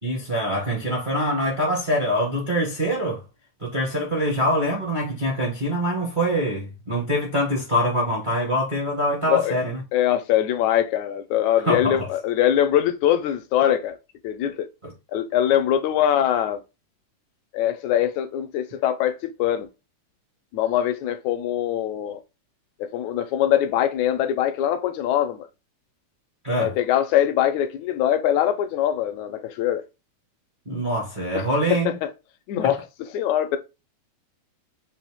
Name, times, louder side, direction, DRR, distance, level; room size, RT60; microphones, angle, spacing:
voice 1, 0.0-3.2 3.6-9.8 11.6-12.1 26.4-26.7 30.6-31.9 32.6-32.7, equal, 35° right, 0.7 m, -24 dB
voice 2, 9.9-14.0 14.2-14.7 15.1-16.6 17.5-19.7 20.5-22.2 22.8-25.5 26.6-29.8 31.3-32.1 32.5-33.6, left 11 dB, 80° left, 1.7 m, -22 dB
5.5 x 2.7 x 3.4 m
omnidirectional pair, 3.7 m